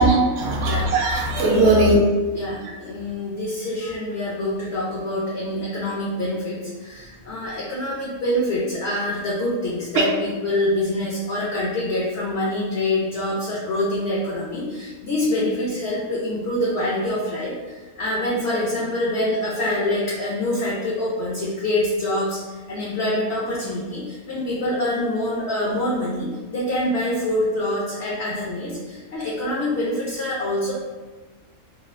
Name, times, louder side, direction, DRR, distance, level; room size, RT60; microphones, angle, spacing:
voice 1, 0.0-2.1 9.9-10.1, right 2 dB, 60° right, -2 dB, 0.7 m, -18 dB
voice 2, 2.4-30.7, left 1 dB, 65° left, -5 dB, 0.7 m, -25 dB
3.0 x 2.3 x 2.4 m, 1.3 s
omnidirectional pair, 1.5 m